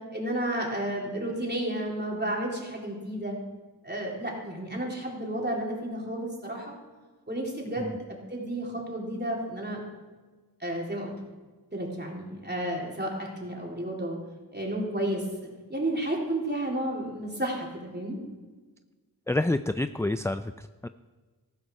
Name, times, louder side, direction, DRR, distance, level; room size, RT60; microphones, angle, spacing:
voice 1, 0.1-3.4 3.8-6.8 7.3-9.8 10.6-11.1 11.7-14.2 14.5-18.2, right 1 dB, 25° right, -2 dB, 3.6 m, -32 dB
voice 2, 19.3-20.9, left 2 dB, 10° left, 11 dB, 0.3 m, -28 dB
14.5 x 12.5 x 4.8 m, 1.3 s
wide cardioid pair, 45°, 40 cm